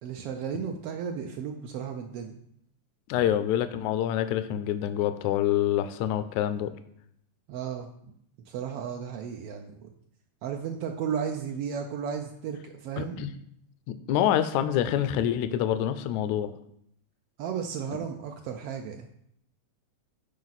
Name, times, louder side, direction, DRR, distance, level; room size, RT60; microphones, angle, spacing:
voice 1, 0.0-2.3 3.2-3.3 7.5-7.9 8.5-9.9 10.4-13.3 17.4-19.1, right 7 dB, 90° right, 3 dB, 1.3 m, -34 dB
voice 2, 3.1-6.7 13.0-13.3 13.9-16.5, left 11 dB, 80° left, 11 dB, 1.9 m, -26 dB
10.5 x 4.7 x 4.1 m, 0.71 s
omnidirectional pair, 3.4 m